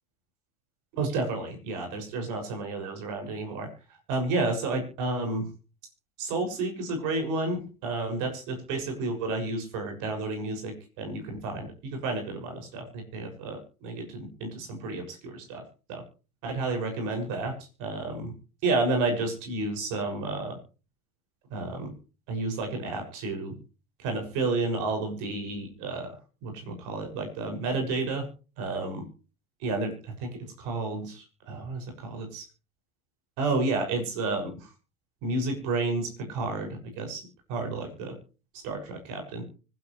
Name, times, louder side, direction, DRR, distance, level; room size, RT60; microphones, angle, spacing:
voice 1, 0.9-3.7 4.1-5.5 6.2-15.6 15.9-16.0 16.4-18.3 18.6-20.6 21.5-21.9 22.3-23.5 24.0-28.3 28.6-29.0 29.6-30.3 30.6-32.4 33.4-34.7 35.2-38.1 38.5-39.4, right 3 dB, 45° right, 3 dB, 6.8 m, -31 dB
25.0 x 12.0 x 3.3 m, 0.36 s
figure-of-eight pair, 80°, 42 cm